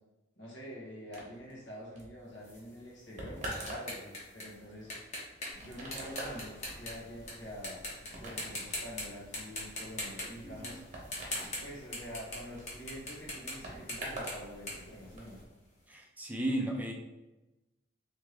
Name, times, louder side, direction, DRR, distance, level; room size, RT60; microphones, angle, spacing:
voice 1, 0.4-4.1 4.3-5.1 5.5-7.8 8.2-11.1 11.6-15.4, equal, 85° left, -5 dB, 1.4 m, -46 dB
sound 1, 1.1-14.4 14.7-15.3, right 1 dB, 40° right, 1.0 m, -45 dB
sound 2, 2.4-7.3 7.6-8.1 8.4-9.0 9.3-15.7, left 1 dB, 40° left, 1.1 m, -41 dB
sound 3, 5.5-15.4, equal, 55° left, 1.3 m, -55 dB
voice 2, 10.4-10.8 15.9-16.9, right 1 dB, 10° right, 0 dB, 0.5 m, -35 dB
3.3 x 3.0 x 3.3 m, 1.0 s
head